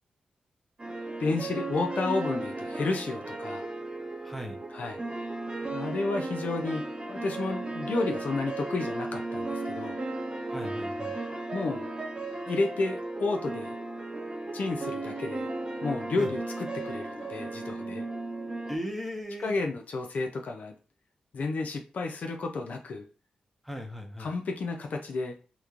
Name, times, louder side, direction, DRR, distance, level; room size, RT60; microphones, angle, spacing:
sound 1, 0.8-18.8, right 2 dB, 35° right, 0.8 m, -35 dB
voice 1, 1.2-3.6 4.7-5.0 5.7-10.0 11.5-11.9 12.5-13.7 14.5-15.5 15.8-16.4 16.8-18.0 19.4-20.7 21.3-23.0 24.2-25.4, left 3 dB, 70° left, 3 dB, 0.4 m, -31 dB
voice 2, 4.2-4.6 10.5-11.2 16.2-16.3 18.7-19.6 23.6-24.3, equal, ahead, 2 dB, 0.8 m, -37 dB
3.0 x 2.1 x 2.4 m, 0.36 s
cardioid pair, 55°, 3 cm